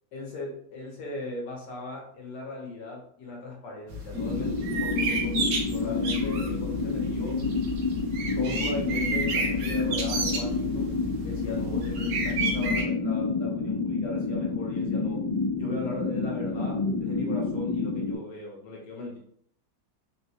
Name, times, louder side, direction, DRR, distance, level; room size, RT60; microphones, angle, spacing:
voice 1, 0.1-7.4 8.4-11.0 11.2-15.3 15.5-19.2, left 2 dB, 65° left, -2 dB, 1.5 m, -38 dB
sound 1, 3.9-12.8, right 2 dB, 70° right, 1.3 m, -32 dB
sound 2, 4.1-18.2, left 4 dB, 50° left, 1.4 m, -29 dB
3.9 x 2.2 x 2.8 m, 0.62 s
omnidirectional pair, 2.1 m